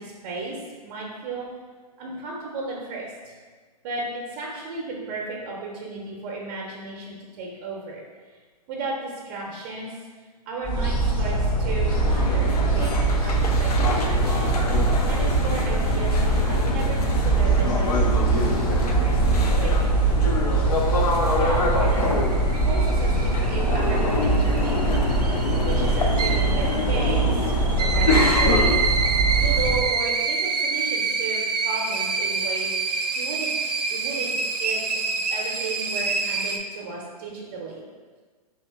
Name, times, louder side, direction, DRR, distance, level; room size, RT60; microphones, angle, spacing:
voice 1, 0.0-1.5 2.0-3.3 3.8-8.0 8.7-9.9 10.5-12.9 13.2-19.9 21.4-22.1 22.7-25.0 25.5-28.8 29.4-33.5 33.9-34.3 34.6-34.8 35.3-37.8, right 3 dB, 35° right, -3 dB, 0.6 m, -34 dB
sound 1, 10.6-29.8, right 3 dB, 25° left, 0.6 m, -23 dB
sound 2, 11.9-28.8, left 2 dB, 70° left, 0.6 m, -26 dB
sound 3, 20.3-36.6, right 4 dB, 80° right, 0.4 m, -28 dB
2.7 x 2.7 x 3.3 m, 1.4 s
figure-of-eight pair, 120°, 20 cm